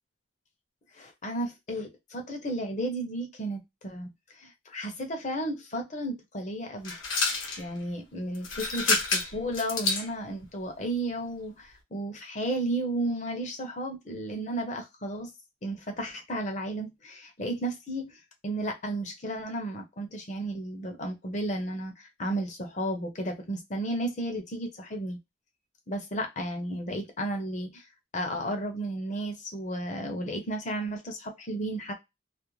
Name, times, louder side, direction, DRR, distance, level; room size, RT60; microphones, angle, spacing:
voice 1, 1.0-4.1 4.3-6.9 7.6-15.3 15.6-18.2 18.4-25.2 25.9-27.8 28.1-31.9, right 1 dB, 40° left, 4 dB, 0.6 m, -33 dB
sound 1, 6.8-7.6 8.3-10.1, left 3 dB, 80° left, 0.9 m, -28 dB
2.4 x 2.0 x 3.0 m, 0.20 s
head